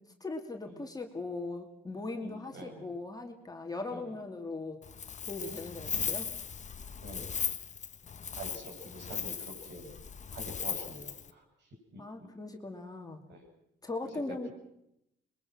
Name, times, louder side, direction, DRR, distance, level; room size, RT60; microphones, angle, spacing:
voice 1, 0.2-4.8 5.3-6.3 12.0-13.2 13.8-14.5, left 2 dB, 20° left, 3 dB, 2.4 m, -39 dB
voice 2, 2.2-2.9 3.9-4.0 7.0-7.3 8.4-10.0 10.3-11.4 11.9-12.0 13.3-13.4 14.0-14.1, right 1 dB, 60° right, 2 dB, 7.7 m, -46 dB
Wind, 4.8-11.3, left 6 dB, 35° left, 1.0 m, -38 dB
25.5 x 21.5 x 6.2 m, 0.81 s
cardioid pair, 90°, 20 cm